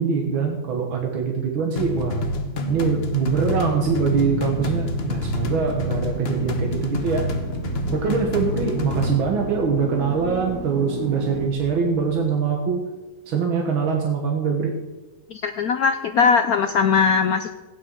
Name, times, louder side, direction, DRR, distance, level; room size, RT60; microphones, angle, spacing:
voice 1, 0.0-2.2 2.7-7.2 7.9-12.8 13.3-14.8, right 5 dB, 85° right, 1 dB, 2.1 m, -23 dB
sound 1, 1.8-9.1, left 1 dB, 40° left, 1.0 m, -27 dB
Drill, 3.8-12.4, right 3 dB, 50° right, 1.5 m, -33 dB
voice 2, 15.3-17.5, left 5 dB, 75° left, 9 dB, 0.8 m, -20 dB
17.0 x 9.0 x 4.5 m, 1.2 s
omnidirectional pair, 2.2 m